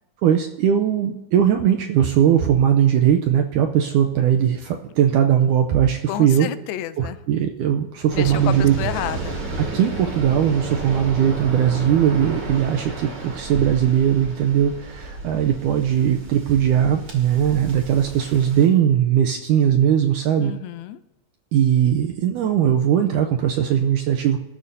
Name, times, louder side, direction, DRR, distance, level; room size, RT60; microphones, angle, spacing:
voice 1, 0.2-6.5 7.0-8.7 9.7-20.5 21.5-24.4, right 9 dB, 80° right, 4 dB, 1.9 m, -19 dB
voice 2, 6.1-7.2 8.1-9.4 20.4-21.0, left 12 dB, 85° left, 12 dB, 2.4 m, -30 dB
Waves surf, 8.1-18.7, right 3 dB, 35° right, 2.5 m, -32 dB
25.5 x 12.5 x 2.7 m, 1.0 s
omnidirectional pair, 4.3 m